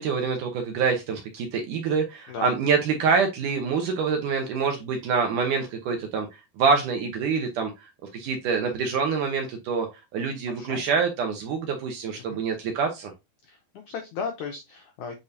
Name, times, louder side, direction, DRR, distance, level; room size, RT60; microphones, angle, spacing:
voice 1, 0.0-6.3 6.6-9.9 10.1-13.1, right 5 dB, 70° right, 4 dB, 2.0 m, -26 dB
voice 2, 13.4-15.1, left 5 dB, 90° left, 4 dB, 1.7 m, -36 dB
8.8 x 4.0 x 2.7 m, 0.23 s
omnidirectional pair, 4.7 m